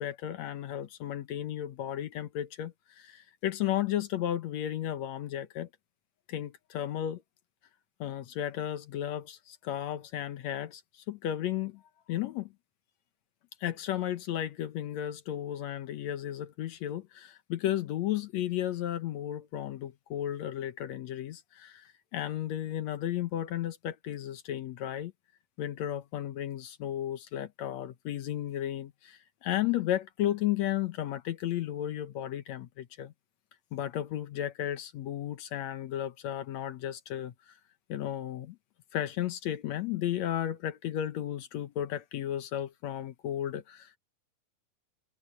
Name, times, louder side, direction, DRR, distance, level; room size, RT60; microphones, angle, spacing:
voice 1, 0.0-5.7 6.3-7.2 8.0-11.8 12.1-12.5 13.6-25.1 25.6-33.1 33.7-37.3 37.9-38.6 38.9-44.0, left 12 dB, 70° left, 1.7 m, -34 dB
omnidirectional pair, 4.3 m